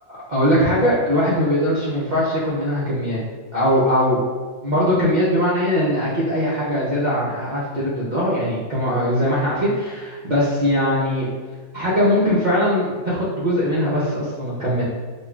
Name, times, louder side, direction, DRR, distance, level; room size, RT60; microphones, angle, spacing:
voice 1, 0.1-3.2 3.5-4.2 4.6-11.3 11.7-14.8, equal, 55° right, -9 dB, 0.5 m, -20 dB
5.3 x 2.3 x 2.2 m, 1.5 s
omnidirectional pair, 1.6 m